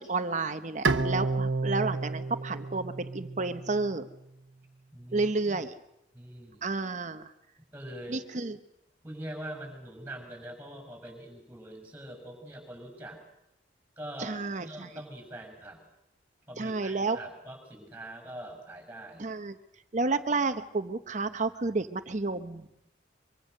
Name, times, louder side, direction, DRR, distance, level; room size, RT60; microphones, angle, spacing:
voice 1, 0.0-4.1 5.1-5.7 6.6-7.3 8.1-8.6 14.2-14.9 16.6-17.2 19.2-19.6 19.9-22.7, right 3 dB, 40° right, 10 dB, 0.9 m, -31 dB
Bowed string instrument, 0.8-4.1, right 3 dB, 85° right, 1.2 m, -31 dB
voice 2, 4.9-5.6 6.1-6.7 7.7-8.2 9.0-13.2 14.0-15.8 16.5-19.2, right 1 dB, 10° right, 4 dB, 6.3 m, -43 dB
24.5 x 24.0 x 6.6 m, 0.84 s
head